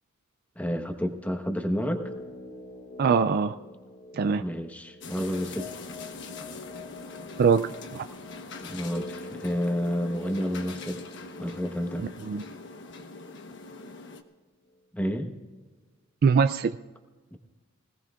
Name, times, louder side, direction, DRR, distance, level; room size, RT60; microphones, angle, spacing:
voice 1, 0.6-2.0 4.4-5.7 8.6-11.0 11.4-12.0 14.9-15.3 17.3-17.4, equal, 10° left, 5 dB, 1.1 m, -30 dB
sound 1, 1.8-13.9 14.2-14.3, left 2 dB, 45° left, 1.4 m, -45 dB
voice 2, 3.0-3.6 4.1-4.4 7.4-8.0 12.0-12.4 16.2-16.7, right 5 dB, 50° right, 10 dB, 0.3 m, -23 dB
sound 2, 5.0-14.2, left 3 dB, 60° left, 1.1 m, -43 dB
24.5 x 17.5 x 2.4 m, 1.3 s
head